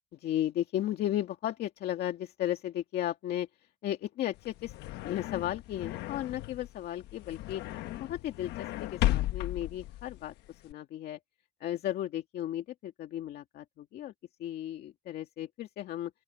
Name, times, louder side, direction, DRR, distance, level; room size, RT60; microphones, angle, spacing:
voice 1, 0.1-3.5 3.8-4.8 5.0-7.6 8.0-11.2 11.6-14.1 14.4-16.1, left 12 dB, 70° left, 2.3 m, -35 dB
sound 1, 4.3-10.7, left 15 dB, 90° left, 1.2 m, -35 dB
open air
cardioid pair, 110°, 17 cm